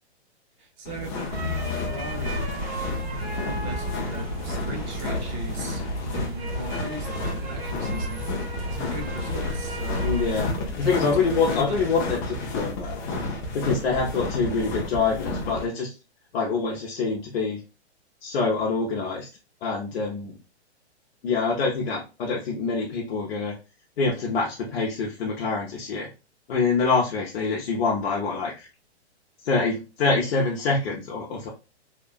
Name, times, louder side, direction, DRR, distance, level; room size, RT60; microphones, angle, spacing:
voice 1, 0.6-2.5 3.4-5.8 6.1-8.2 8.7-10.1 10.8-11.9, right 1 dB, 30° right, 3 dB, 0.7 m, -38 dB
sound 1, 0.9-15.7, left 2 dB, 20° left, 0.4 m, -32 dB
sound 2, 1.3-10.5, equal, 60° right, 1.3 m, -32 dB
voice 2, 10.0-13.0 13.5-15.9 16.3-17.6 18.2-19.3 19.6-20.3 21.2-23.6 24.0-26.1 26.5-28.7 29.4-31.5, left 4 dB, 60° left, -3 dB, 0.8 m, -25 dB
2.8 x 2.3 x 2.3 m, 0.30 s
hypercardioid pair, 145°, 34 cm